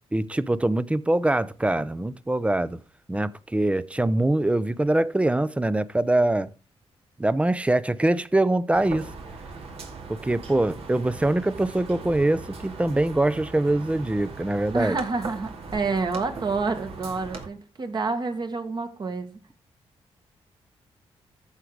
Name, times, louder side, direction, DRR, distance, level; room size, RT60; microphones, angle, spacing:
voice 1, 0.1-2.8 3.1-6.5 7.2-9.1 10.1-15.0, right 1 dB, 10° right, 0.6 m, -23 dB
sound 1, 8.7-17.5, right 4 dB, 70° right, 2.4 m, -39 dB
voice 2, 14.7-19.4, right 4 dB, 45° right, 1.9 m, -28 dB
14.0 x 5.0 x 4.9 m
cardioid pair, 90°, 11 cm